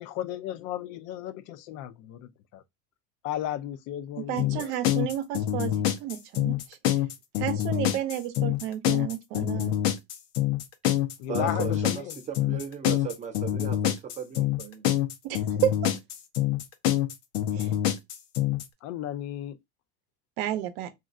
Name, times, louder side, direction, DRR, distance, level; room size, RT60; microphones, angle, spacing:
voice 1, 0.0-2.6 3.2-4.7 11.2-12.2 18.8-19.6, left 12 dB, 45° left, 0.4 m, -35 dB
voice 2, 4.2-6.8 7.4-9.7 15.2-15.9 17.5-17.7 20.4-20.9, right 12 dB, 60° right, 0.7 m, -31 dB
sound 1, 4.4-18.6, left 12 dB, 75° left, 0.7 m, -26 dB
voice 3, 11.3-14.8, right 7 dB, 20° right, 0.5 m, -36 dB
3.0 x 2.5 x 2.5 m
supercardioid pair, 130°, 36 cm